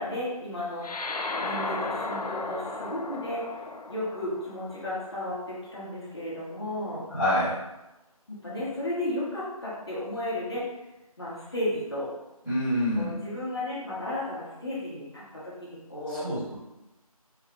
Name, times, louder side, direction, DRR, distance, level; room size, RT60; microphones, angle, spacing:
voice 1, 0.0-7.1 8.3-10.6 11.2-12.1 13.0-16.3, left 1 dB, 45° left, -8 dB, 1.4 m, -34 dB
sound 1, 0.8-5.6, left 3 dB, 85° left, 0.4 m, -35 dB
voice 2, 7.1-7.6 12.4-13.1 16.1-16.5, left 1 dB, ahead, -31 dB, 0.7 m, -27 dB
4.6 x 2.2 x 3.6 m, 0.97 s
figure-of-eight pair, 165°, 19 cm